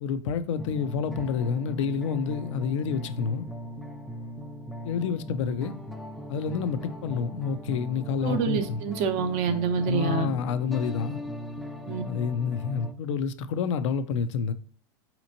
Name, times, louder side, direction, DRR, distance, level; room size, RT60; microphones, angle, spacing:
voice 1, 0.0-3.5 4.8-5.7 6.3-8.8 9.9-11.2 12.1-14.5, left 6 dB, 80° left, 0.4 m, -28 dB
sound 1, 0.6-12.9, equal, ahead, 0.3 m, -39 dB
voice 2, 8.2-10.3 11.9-12.0, right 5 dB, 55° right, 0.7 m, -27 dB
4.2 x 2.9 x 2.6 m
hypercardioid pair, 105°, 15 cm